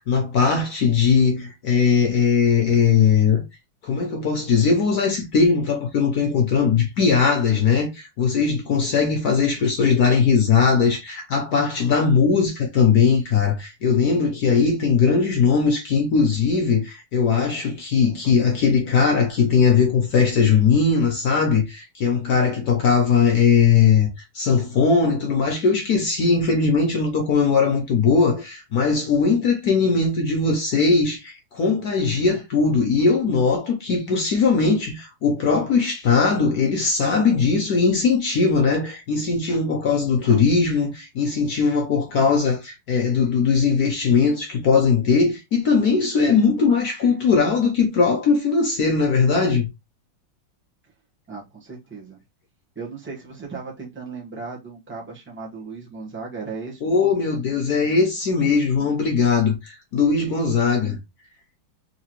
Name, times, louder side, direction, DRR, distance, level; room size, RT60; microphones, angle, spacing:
voice 1, 0.0-3.4 3.8-24.1 24.3-49.7 56.8-61.0, left 5 dB, 65° left, 1.0 m, -19 dB
voice 2, 51.3-52.2 52.7-57.2, right 4 dB, 10° right, 0.6 m, -36 dB
3.8 x 3.2 x 3.0 m
omnidirectional pair, 2.4 m